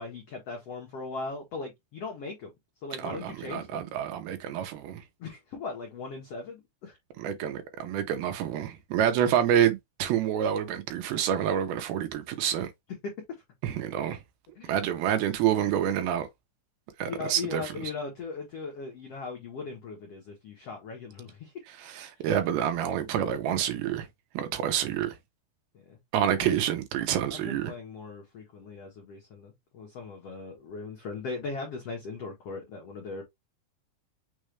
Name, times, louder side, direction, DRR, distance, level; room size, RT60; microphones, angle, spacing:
voice 1, 0.0-2.5 2.8-3.8 5.2-7.0 13.0-13.1 14.5-14.7 17.0-21.5 25.7-26.0 26.4-26.5 27.1-33.2, left 4 dB, 70° left, 1.4 m, -39 dB
voice 2, 3.0-5.0 7.2-12.7 13.6-14.2 14.7-16.3 17.0-17.9 21.8-24.1 24.3-25.2 26.1-27.7, right 10 dB, 75° right, 2.6 m, -28 dB
6.4 x 2.5 x 3.2 m
omnidirectional pair, 4.7 m